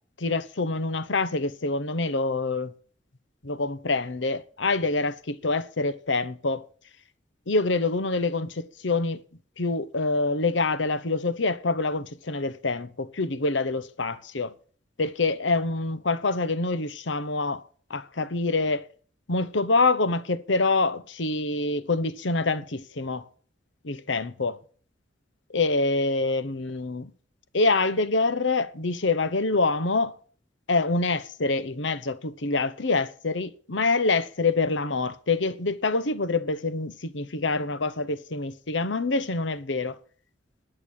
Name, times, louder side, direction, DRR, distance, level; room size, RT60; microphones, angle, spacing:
voice 1, 0.2-2.7 3.4-6.6 7.5-9.2 9.6-14.5 15.0-17.6 17.9-18.9 19.3-23.2 23.8-24.6 25.5-27.1 27.5-30.2 30.7-40.0, left 3 dB, 75° left, 1.0 m, -26 dB
11.0 x 6.7 x 8.9 m
head